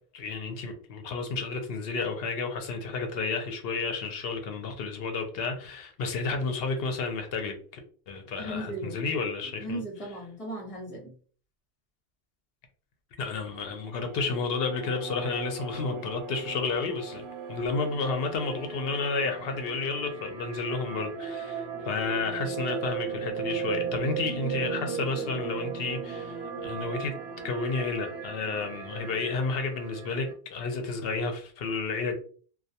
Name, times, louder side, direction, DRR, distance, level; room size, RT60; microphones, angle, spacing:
voice 1, 0.1-7.8 8.1-9.8 13.2-27.1 27.4-32.1, left 4 dB, 70° left, 0.8 m, -31 dB
voice 2, 8.4-9.0 9.6-11.1, right 1 dB, 35° left, 1.0 m, -36 dB
sound 1, 13.4-30.3, right 6 dB, 75° right, 0.9 m, -37 dB
2.2 x 2.2 x 2.7 m
omnidirectional pair, 1.1 m